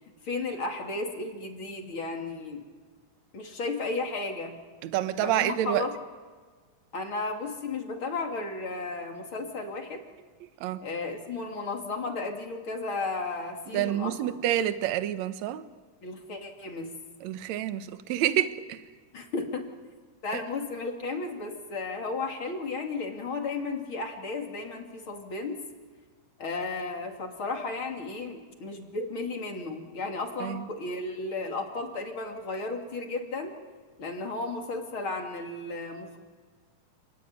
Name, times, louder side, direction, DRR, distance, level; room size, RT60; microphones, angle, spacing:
voice 1, 0.2-2.7 3.3-4.6 5.2-5.9 6.9-10.0 10.8-14.4 16.0-16.9 19.1-19.7 20.2-25.6 26.4-33.6 34.0-36.2, left 3 dB, 40° left, 3.2 m, -34 dB
voice 2, 4.8-5.9 10.6-10.8 13.7-15.6 17.2-18.8 20.3-20.4 30.4-30.7, right 12 dB, 65° right, 2.1 m, -28 dB
29.0 x 19.5 x 9.1 m
omnidirectional pair, 3.8 m